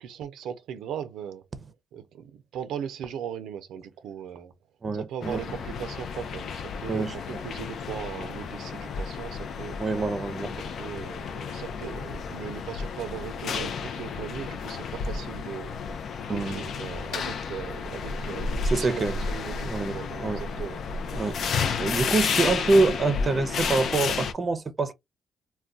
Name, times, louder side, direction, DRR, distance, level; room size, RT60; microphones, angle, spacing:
voice 1, 0.0-1.4 1.9-4.5 4.9-9.8 10.8-15.7 16.3-20.8, right 9 dB, 85° right, 0.4 m, -38 dB
voice 2, 4.8-5.4 6.9-7.1 9.8-10.7 16.3-16.6 18.7-19.2 19.6-20.4 21.1-24.9, right 3 dB, 35° right, 0.6 m, -26 dB
sound 1, 5.2-24.3, left 5 dB, 65° left, 0.4 m, -32 dB
2.3 x 2.2 x 3.7 m
cardioid pair, 95°, 0 cm